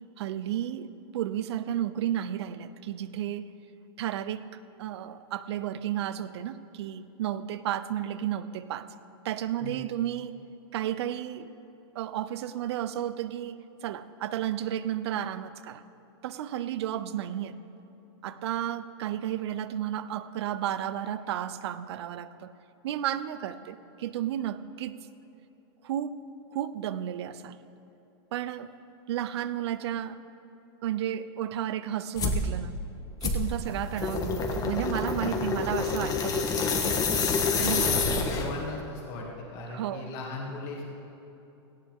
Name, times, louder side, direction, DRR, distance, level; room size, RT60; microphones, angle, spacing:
voice 1, 0.2-3.5 4.0-4.5 4.8-8.9 9.2-10.4 10.7-11.5 11.9-15.8 16.2-17.6 18.2-22.5 22.8-25.0 25.8-26.2 26.5-27.6 28.3-28.7 29.1-30.2 30.8-32.8 33.2-37.1 37.6-37.8 39.7-40.1, right 11 dB, 75° right, 14 dB, 0.6 m, -32 dB
sound 1, 32.2-32.5 33.2-38.6, left 4 dB, 25° left, 1.4 m, -27 dB
voice 2, 37.5-40.8, left 3 dB, 50° left, -2 dB, 2.3 m, -38 dB
17.5 x 14.0 x 3.7 m, 3.0 s
supercardioid pair, 130°, 14 cm